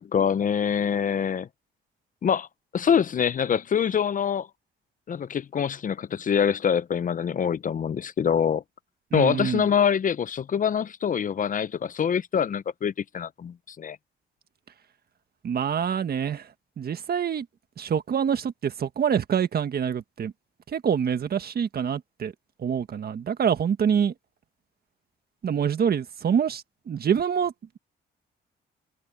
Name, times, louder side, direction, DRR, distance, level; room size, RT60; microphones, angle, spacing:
voice 1, 0.0-1.5 2.2-2.5 2.7-4.5 5.1-8.6 9.1-14.0, left 8 dB, 40° left, 0.6 m, -25 dB
voice 2, 9.1-9.6 15.4-16.5 16.8-17.4 17.8-20.3 20.7-22.3 22.6-24.1 25.4-27.8, right 8 dB, 50° right, 1.6 m, -26 dB
cardioid pair, 90°, 20 cm